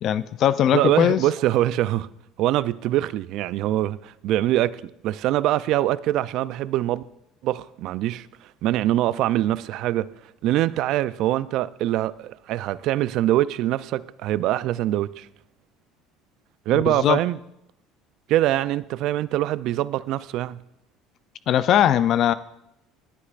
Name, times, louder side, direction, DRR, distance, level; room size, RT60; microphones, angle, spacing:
voice 1, 0.0-1.2 16.7-17.2 21.5-22.3, left 11 dB, 55° left, 0.4 m, -20 dB
voice 2, 0.7-2.1 2.4-7.0 7.4-8.3 8.6-10.1 10.4-15.3 16.7-17.4 18.3-20.6, right 14 dB, 65° right, 0.4 m, -23 dB
24.0 x 8.4 x 2.5 m
supercardioid pair, 90°, 0 cm